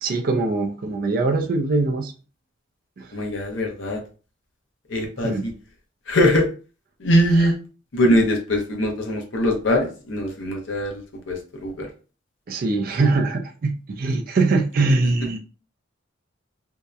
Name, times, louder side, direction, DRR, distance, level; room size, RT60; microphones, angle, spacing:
voice 1, 0.0-2.1 3.0-3.1 5.2-5.5 12.5-15.4, right 3 dB, 45° right, 0.4 m, -22 dB
voice 2, 3.1-4.0 4.9-5.5 6.1-6.5 7.0-7.6 7.9-11.9, equal, 70° left, 0.6 m, -22 dB
2.7 x 2.0 x 2.3 m
head